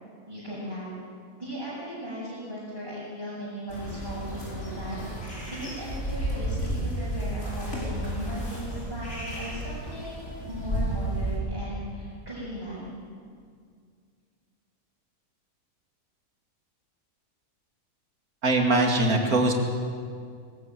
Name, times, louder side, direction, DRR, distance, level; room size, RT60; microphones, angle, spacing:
voice 1, 0.3-0.9 1.4-5.0 5.3-13.0, equal, 15° right, -11 dB, 6.9 m, -37 dB
sound 1, 3.7-11.4, right 1 dB, 50° left, 5.5 m, -32 dB
voice 2, 18.4-19.5, right 2 dB, 75° right, 2 dB, 2.8 m, -22 dB
20.0 x 20.0 x 7.6 m, 2.1 s
omnidirectional pair, 1.6 m